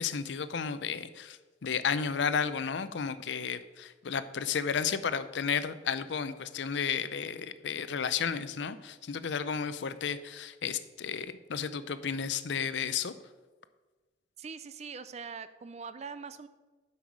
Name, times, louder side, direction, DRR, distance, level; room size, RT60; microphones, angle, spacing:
voice 1, 0.0-13.1, left 6 dB, 70° left, 13 dB, 0.5 m, -33 dB
voice 2, 14.4-16.5, right 5 dB, 35° right, 13 dB, 0.4 m, -42 dB
8.6 x 5.5 x 6.1 m, 1.3 s
head